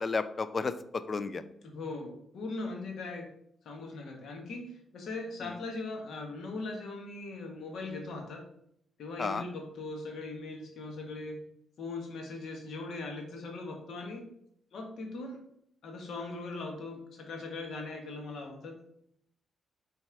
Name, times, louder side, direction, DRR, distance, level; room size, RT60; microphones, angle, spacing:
voice 1, 0.0-1.4 5.4-5.6 9.2-9.4, left 4 dB, 35° left, 12 dB, 0.4 m, -32 dB
voice 2, 1.6-3.3 3.6-8.4 9.0-11.4 11.8-14.3 14.7-15.4 15.8-18.8, left 3 dB, 75° left, 2 dB, 1.4 m, -40 dB
5.9 x 3.4 x 4.7 m, 0.72 s
cardioid pair, 110°, 0 cm